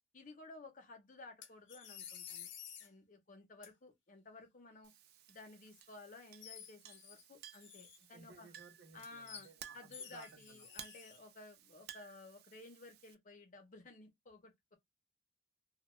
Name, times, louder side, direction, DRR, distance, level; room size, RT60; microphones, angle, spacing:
voice 1, 0.1-2.5 2.8-4.9 5.3-8.5 8.9-9.5 9.7-14.8, left 3 dB, 45° left, 0.7 m, -55 dB
sound 1, 1.4-2.9 3.6-3.7 5.7-5.8 6.4-7.2 7.5-8.2 9.0-9.5 9.9-11.2, left 8 dB, 85° left, 0.5 m, -51 dB
Chink clink, 4.8-13.1, right 10 dB, 55° right, 0.3 m, -57 dB
voice 2, 8.1-10.7, right 3 dB, 80° right, 0.9 m, -59 dB
2.2 x 2.2 x 3.0 m
head